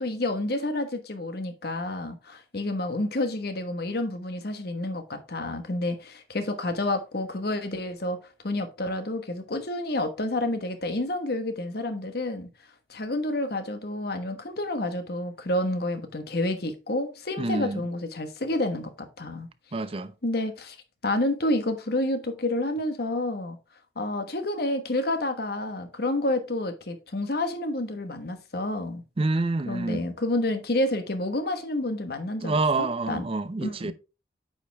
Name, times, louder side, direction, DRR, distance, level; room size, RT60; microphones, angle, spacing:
voice 1, 0.0-8.2 8.4-12.5 12.9-19.5 20.2-20.8 21.0-23.6 24.0-29.0 29.6-33.2 33.6-33.9, left 1 dB, 60° left, 1.3 m, -29 dB
voice 2, 17.4-17.8 19.7-20.1 29.2-30.0 32.4-33.9, right 3 dB, 30° right, 0.5 m, -27 dB
8.9 x 5.1 x 3.4 m
head